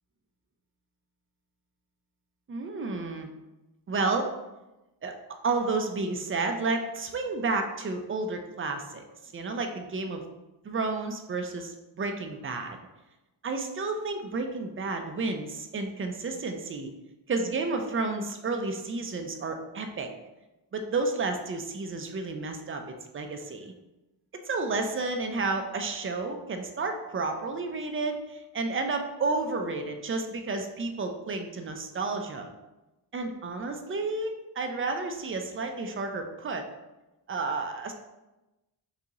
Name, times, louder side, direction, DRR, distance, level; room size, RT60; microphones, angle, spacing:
voice 1, 2.5-3.3 3.9-4.3 5.0-5.1 5.4-9.0 9.3-10.2 10.6-12.8 13.4-16.9 17.3-20.1 20.7-23.7 24.5-32.5 33.1-36.7 37.3-37.9, right 3 dB, 30° right, 5 dB, 0.4 m, -31 dB
4.0 x 2.8 x 3.6 m, 1.0 s
wide cardioid pair, 125°, 43 cm